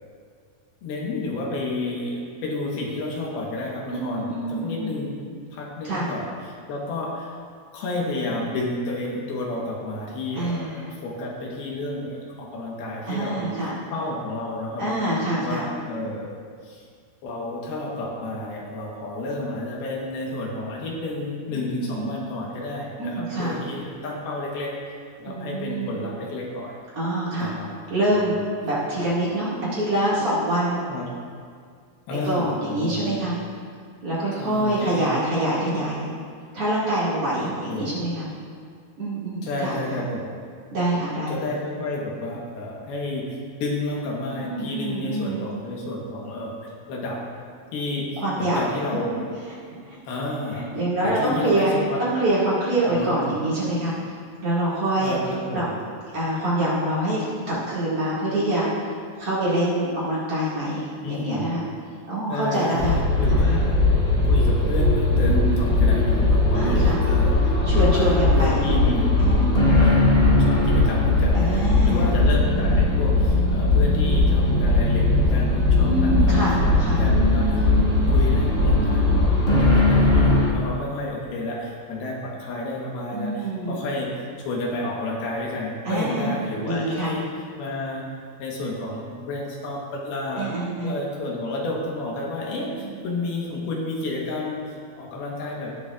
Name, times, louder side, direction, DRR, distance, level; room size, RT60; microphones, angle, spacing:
voice 1, 0.8-5.2 5.5-7.4 7.7-15.0 15.4-16.4 16.6-16.9 17.2-24.8 25.2-26.7 27.4-27.7 28.1-28.4 28.9-29.1 30.9-31.1 32.1-33.3 34.4-35.1 37.4-37.9 39.4-40.3 41.3-47.2 47.7-49.2 50.1-50.6 51.0-52.0 52.9-53.4 55.0-55.8 61.0-61.5 62.3-63.8 64.3-69.1 69.8-77.7 78.1-79.2 79.5-87.3 87.6-88.1 88.4-90.5 90.8-95.7, left 2 dB, 80° left, -2 dB, 3.1 m, -31 dB
voice 2, 3.9-5.0 5.8-6.1 10.4-10.9 13.1-13.7 14.8-15.6 21.8-22.1 23.0-23.6 25.2-25.9 26.9-27.5 27.9-28.4 28.6-30.8 32.3-33.4 34.0-36.1 36.5-38.3 39.0-39.8 40.7-41.3 44.4-45.5 48.2-48.6 49.1-49.2 49.5-49.6 49.9-50.0 50.5-53.9 54.4-55.2 55.5-55.6 56.1-58.7 59.2-61.6 62.1-63.0 63.3-63.5 65.1-66.0 66.5-67.0 67.6-68.6 69.2-69.7 71.3-72.1 75.8-77.0 78.7-79.4 83.1-83.8 85.8-86.3 86.6-87.1 90.4-90.9 92.5-92.9, right 1 dB, 40° right, -9 dB, 2.7 m, -25 dB
sound 1, 62.8-80.5, left 2 dB, 50° left, 0.7 m, -19 dB
19.0 x 7.0 x 2.5 m, 2.1 s
omnidirectional pair, 4.5 m